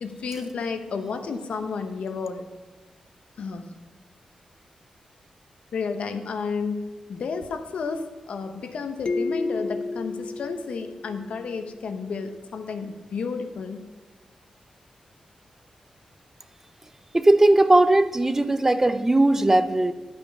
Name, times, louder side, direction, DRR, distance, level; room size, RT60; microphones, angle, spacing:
voice 1, 0.0-2.5 3.4-3.7 5.7-13.9, left 5 dB, 75° left, 7 dB, 0.9 m, -32 dB
sound 1, 9.1-11.6, left 3 dB, 50° left, 0.5 m, -31 dB
voice 2, 17.1-19.9, right 2 dB, 20° right, 11 dB, 0.6 m, -18 dB
11.0 x 5.2 x 5.3 m, 1.2 s
cardioid pair, 85°, 2 cm